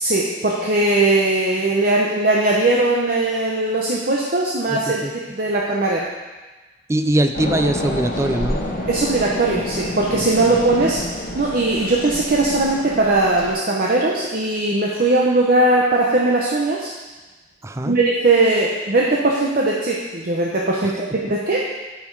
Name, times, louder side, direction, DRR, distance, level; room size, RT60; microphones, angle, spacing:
voice 1, 0.0-5.0 5.3-6.1 8.9-11.0 11.3-16.9 17.8-21.6, right 2 dB, 50° right, -3 dB, 0.8 m, -19 dB
voice 2, 4.7-5.1 6.9-8.6 10.1-10.2 17.6-18.0 20.8-20.9, right 1 dB, 15° right, 7 dB, 0.4 m, -22 dB
sound 1, 7.3-13.5, left 1 dB, 55° left, 1.1 m, -28 dB
8.4 x 5.6 x 4.7 m, 1.2 s
head